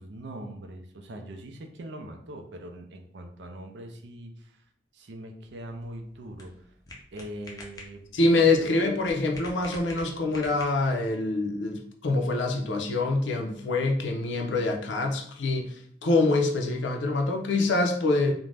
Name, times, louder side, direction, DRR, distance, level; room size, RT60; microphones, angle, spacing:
voice 1, 0.0-4.6 4.9-6.7 7.1-8.0 8.4-8.9, right 1 dB, 75° right, 4 dB, 0.5 m, -41 dB
sound 1, 5.5-11.1, left 2 dB, 20° left, 0.5 m, -47 dB
voice 2, 8.1-18.3, left 2 dB, 90° left, 3 dB, 0.5 m, -25 dB
2.5 x 2.1 x 3.2 m, 0.63 s
head